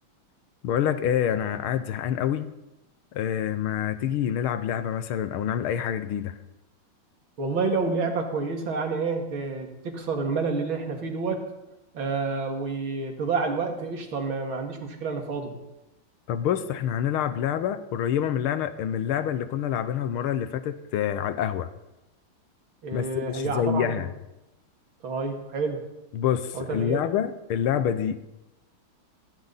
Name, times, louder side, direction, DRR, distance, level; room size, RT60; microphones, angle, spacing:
voice 1, 0.6-2.5 3.1-6.4 16.3-21.7 22.9-24.1 26.1-28.3, left 9 dB, 85° left, 12 dB, 1.8 m, -27 dB
voice 2, 7.4-11.4 11.9-15.6 22.8-24.1 25.0-25.8 26.5-27.0, right 4 dB, 70° right, 2 dB, 3.1 m, -29 dB
21.0 x 16.5 x 4.1 m, 0.95 s
omnidirectional pair, 2.3 m